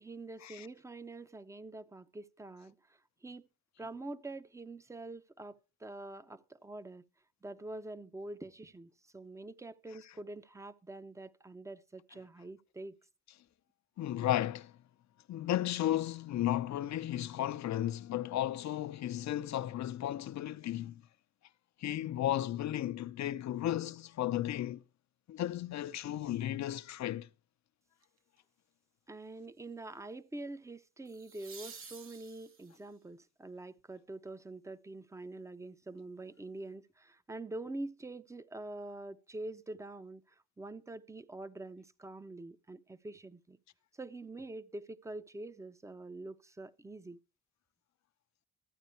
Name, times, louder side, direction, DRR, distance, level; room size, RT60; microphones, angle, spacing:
voice 1, 0.0-2.8 3.2-3.5 3.8-7.0 7.4-13.0 29.1-40.2 40.6-43.6 43.9-47.2, right 2 dB, 10° right, 0.7 m, -45 dB
voice 2, 14.0-14.7 15.3-21.0 21.8-24.8 25.3-27.3, left 12 dB, 65° left, 0.8 m, -34 dB
sound 1, 28.0-28.4 31.0-32.9 35.8-35.9, right 5 dB, 45° right, 2.0 m, -51 dB
13.5 x 9.1 x 4.4 m
cardioid pair, 90°, 30 cm